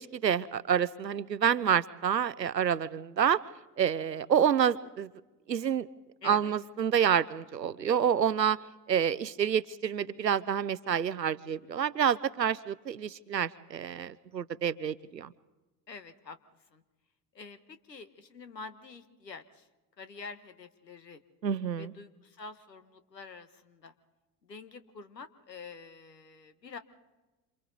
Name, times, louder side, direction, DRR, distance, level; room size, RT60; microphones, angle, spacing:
voice 1, 0.0-3.4 3.8-5.1 5.5-5.9 6.2-8.6 8.9-15.3 21.4-21.9, right 8 dB, 90° right, 19 dB, 0.7 m, -28 dB
voice 2, 6.2-6.5 15.9-16.4 16.7-16.8 17.3-19.7 20.0-21.2 21.8-23.9 24.4-26.8, left 4 dB, 85° left, 11 dB, 1.5 m, -47 dB
28.5 x 27.5 x 4.0 m, 1.1 s
figure-of-eight pair, 65°, 48 cm